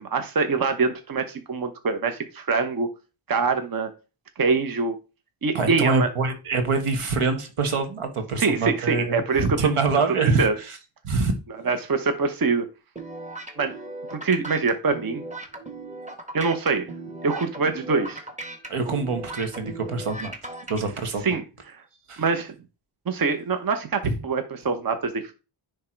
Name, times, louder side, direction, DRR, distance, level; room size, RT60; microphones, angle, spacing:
voice 1, 0.0-2.9 3.3-3.9 4.4-5.0 5.4-6.1 8.4-9.7 10.4-10.6 11.6-12.7 13.6-13.7 14.1-15.2 16.3-16.9 17.2-18.2 21.2-21.8 22.2-22.5 23.1-25.3, right 4 dB, 45° right, 1.0 m, -24 dB
voice 2, 5.5-10.8 11.0-11.3 18.7-20.3 20.7-21.4 22.1-22.2 24.0-24.1, right 4 dB, 85° right, 1.5 m, -25 dB
sound 1, 13.0-20.8, right 2 dB, 15° right, 1.4 m, -37 dB
10.0 x 3.4 x 4.5 m
wide cardioid pair, 120°, 50 cm